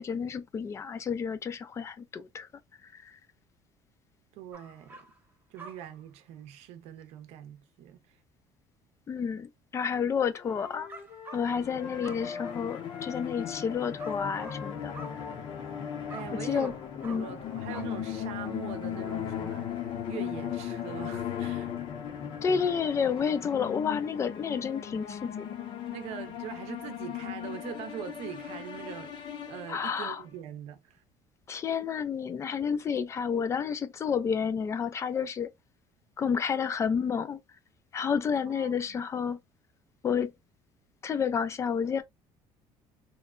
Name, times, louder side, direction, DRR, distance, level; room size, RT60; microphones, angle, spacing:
voice 1, 0.0-2.5 2.8-3.2 9.1-10.9 11.3-14.9 16.3-17.3 22.4-25.5 29.7-30.2 31.5-35.5 36.2-37.4 37.9-39.4 40.0-40.3 41.0-42.0, left 6 dB, 25° left, 0.3 m, -30 dB
voice 2, 4.3-5.1 5.5-8.2 16.1-16.7 17.1-21.8 25.9-29.2 29.5-31.0 38.5-39.1, right 10 dB, 70° right, 0.6 m, -42 dB
sound 1, 4.5-5.3 5.6-6.1 10.9-11.8 12.0-12.7 14.0-15.7 16.1-18.3 18.7-18.8 19.7-19.8 20.3-21.4 21.8-21.9, right 2 dB, 15° right, 0.6 m, -49 dB
sound 2, 10.3-16.2, left 5 dB, 65° left, 1.2 m, -43 dB
sound 3, 11.4-30.2, left 9 dB, 45° left, 0.7 m, -38 dB
3.1 x 2.1 x 2.3 m
cardioid pair, 140°, 11 cm